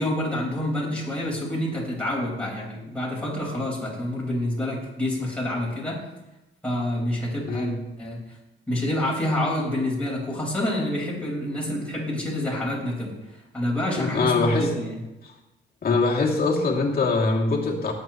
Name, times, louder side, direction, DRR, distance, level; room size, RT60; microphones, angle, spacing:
voice 1, 0.0-6.0 6.6-7.7 8.0-8.2 8.7-13.1 13.5-15.0, left 1 dB, 5° left, -5 dB, 4.8 m, -27 dB
voice 2, 7.4-7.8 13.9-14.7 15.2-15.3 15.8-17.9, left 3 dB, 50° left, -1 dB, 2.8 m, -23 dB
18.5 x 8.5 x 3.1 m, 0.99 s
cardioid pair, 90°, 20 cm